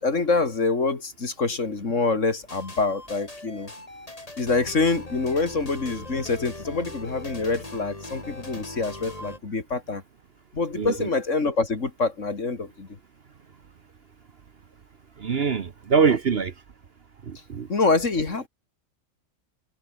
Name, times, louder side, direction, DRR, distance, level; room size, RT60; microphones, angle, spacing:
voice 1, 0.0-3.7 4.4-10.0 10.5-12.9 17.7-18.5, left 3 dB, 55° left, 3.1 m, -25 dB
sound 1, 2.5-9.4, left 2 dB, 25° left, 3.2 m, -40 dB
voice 2, 10.8-11.1 15.2-16.5 17.3-17.7, right 5 dB, 50° right, 1.1 m, -24 dB
omnidirectional pair, 1.5 m